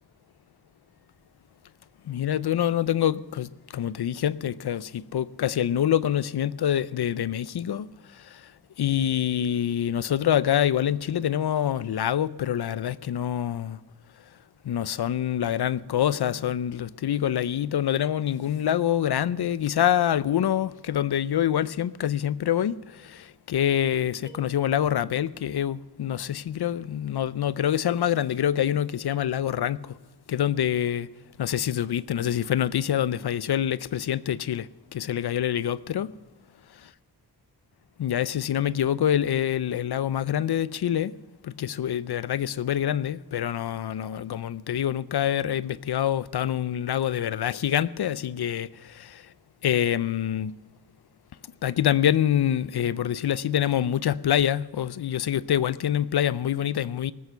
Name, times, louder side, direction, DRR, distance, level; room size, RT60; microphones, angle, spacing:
voice 1, 2.0-8.5 8.8-13.8 14.6-30.0 30.3-31.1 31.4-36.2 38.0-41.2 41.4-49.3 49.6-50.6 51.6-57.1, left 10 dB, 75° left, 0.5 m, -26 dB
sound 1, 24.3-25.4, right 1 dB, 10° right, 2.5 m, -51 dB
18.5 x 8.3 x 6.6 m
wide cardioid pair, 60°, 39 cm